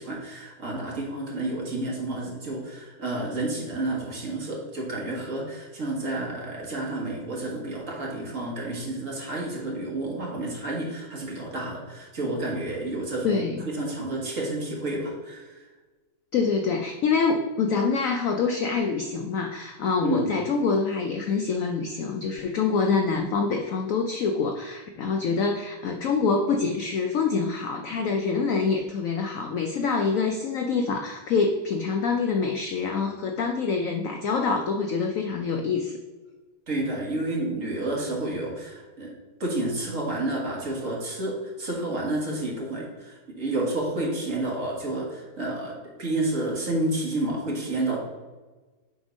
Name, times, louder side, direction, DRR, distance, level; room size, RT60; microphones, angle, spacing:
voice 1, 0.0-15.6 20.0-20.4 36.7-39.1 39.4-48.0, right 2 dB, 45° right, -3 dB, 1.8 m, -30 dB
voice 2, 13.2-13.6 16.3-36.0, left 4 dB, 85° left, 4 dB, 0.7 m, -26 dB
7.5 x 3.5 x 5.1 m, 1.3 s
omnidirectional pair, 2.1 m